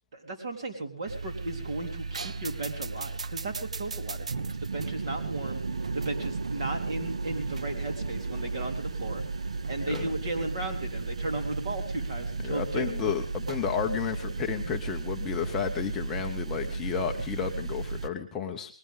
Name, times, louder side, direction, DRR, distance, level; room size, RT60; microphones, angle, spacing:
voice 1, 0.1-5.6 5.9-9.2 9.7-12.9, right 2 dB, 40° right, 3 dB, 3.8 m, -35 dB
sound 1, 1.1-18.1, right 3 dB, 65° right, 0.9 m, -34 dB
voice 2, 12.4-18.7, left 7 dB, 10° left, 2 dB, 0.7 m, -32 dB
20.5 x 18.0 x 3.7 m, 0.39 s
hypercardioid pair, 160°, 4 cm